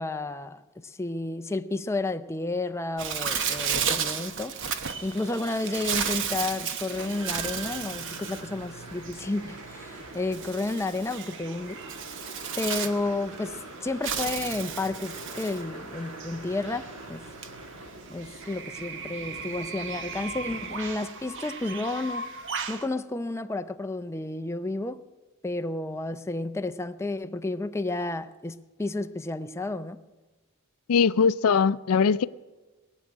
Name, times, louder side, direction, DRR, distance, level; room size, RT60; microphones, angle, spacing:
voice 1, 0.0-4.5 5.0-11.8 12.6-17.3 18.1-22.3 22.7-25.0 25.4-30.0, left 2 dB, 10° left, 0.5 m, -31 dB
Bird, 3.0-22.9, right 7 dB, 60° right, 1.0 m, -34 dB
sound 1, 6.9-21.2, right 2 dB, 80° right, 2.3 m, -43 dB
voice 2, 30.9-32.3, left 6 dB, 70° left, 0.4 m, -21 dB
19.5 x 7.3 x 9.7 m
head